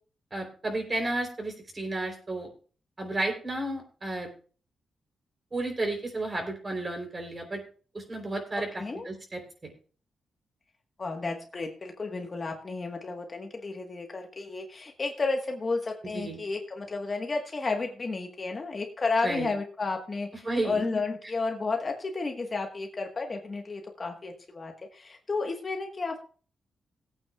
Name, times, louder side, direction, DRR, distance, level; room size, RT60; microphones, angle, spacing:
voice 1, 0.3-2.5 3.0-4.3 5.5-7.6 7.9-9.7 16.1-16.4 19.2-19.5 20.4-20.8, right 2 dB, 25° right, 3 dB, 3.4 m, -32 dB
voice 2, 8.8-9.1 11.0-26.2, left 3 dB, 30° left, 3 dB, 1.3 m, -32 dB
20.5 x 8.8 x 2.3 m, 0.39 s
wide cardioid pair, 125°, 0 cm